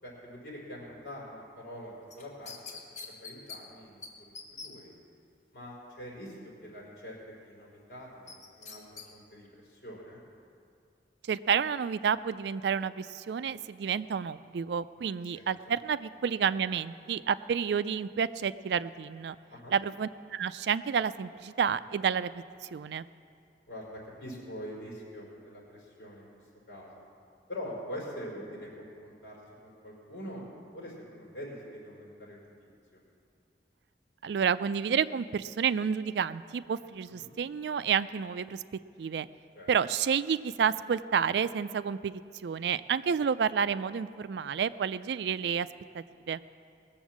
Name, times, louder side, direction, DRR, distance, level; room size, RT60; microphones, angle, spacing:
voice 1, 0.0-2.5 3.0-4.9 5.5-10.2 15.3-15.5 19.5-19.7 23.7-26.3 26.7-27.0 27.5-30.5 30.7-33.0 37.2-37.3 39.5-39.7, equal, 65° left, -4 dB, 4.6 m, -44 dB
sound 1, 2.1-3.6 4.0-4.1 4.4-4.7 8.3-9.1 9.5-9.6, left 5 dB, 40° left, 1.5 m, -43 dB
voice 2, 11.3-19.4 19.7-22.4 22.7-23.1 34.2-38.6 39.0-39.3 39.7-45.7 45.9-46.4, right 7 dB, 70° right, 15 dB, 0.3 m, -30 dB
19.5 x 7.2 x 7.3 m, 2.4 s
head